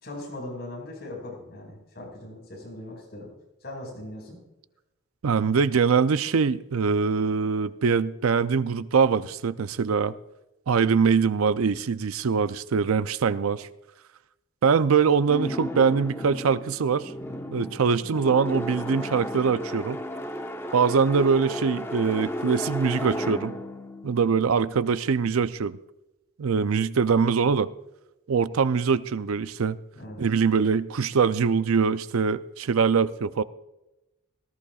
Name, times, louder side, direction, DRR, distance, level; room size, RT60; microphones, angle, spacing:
voice 1, 0.0-3.3 3.6-4.4 13.3-13.6 29.9-30.3, left 1 dB, 50° left, 5.4 m, -39 dB
voice 2, 5.2-10.1 10.7-13.7 14.6-17.1 17.5-20.0 20.7-23.5 24.0-25.8 26.4-27.7 28.3-29.8 30.2-33.4, right 5 dB, 90° right, 0.5 m, -23 dB
sound 1, 15.3-25.2, equal, 10° left, 0.7 m, -34 dB
18.5 x 14.5 x 2.4 m
head